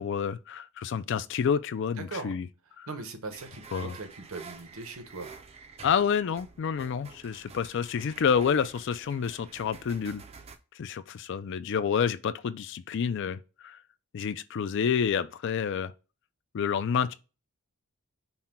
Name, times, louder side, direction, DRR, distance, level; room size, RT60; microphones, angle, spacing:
voice 1, 0.0-2.5 2.8-2.9 3.7-3.9 5.8-10.2 10.7-13.8 14.1-15.9 16.5-17.2, left 7 dB, 55° left, 0.3 m, -29 dB
voice 2, 2.0-2.3 2.9-5.3, right 3 dB, 65° right, 0.9 m, -40 dB
sound 1, 3.3-10.6, right 4 dB, 25° right, 0.4 m, -49 dB
5.6 x 2.2 x 4.3 m
head